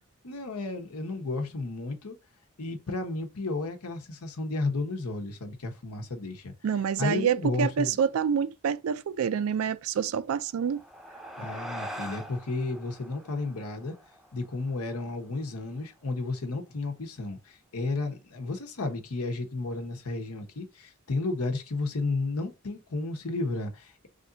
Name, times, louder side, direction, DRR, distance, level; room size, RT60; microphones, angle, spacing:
voice 1, 0.2-2.2 2.6-6.5 7.0-8.0 11.4-14.0 14.3-24.1, left 3 dB, 85° left, 1.0 m, -32 dB
voice 2, 6.6-10.8, right 7 dB, 65° right, 0.3 m, -27 dB
sound 1, 10.5-15.2, equal, ahead, 0.6 m, -43 dB
3.4 x 2.6 x 3.8 m
head